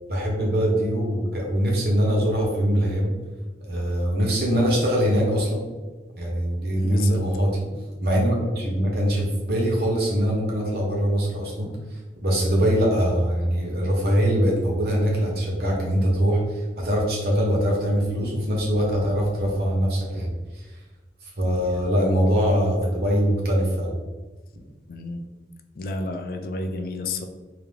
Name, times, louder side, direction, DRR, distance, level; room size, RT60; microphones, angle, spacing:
voice 1, 0.1-3.1 3.7-5.6 6.2-7.7 8.0-11.7 12.2-20.3 21.4-23.9, equal, 60° right, -2 dB, 1.1 m, -22 dB
voice 2, 6.8-7.2 21.4-21.5 21.8-21.9 24.9-25.2 25.8-27.3, left 3 dB, 55° left, 6 dB, 0.4 m, -31 dB
3.5 x 2.9 x 3.3 m, 1.3 s
head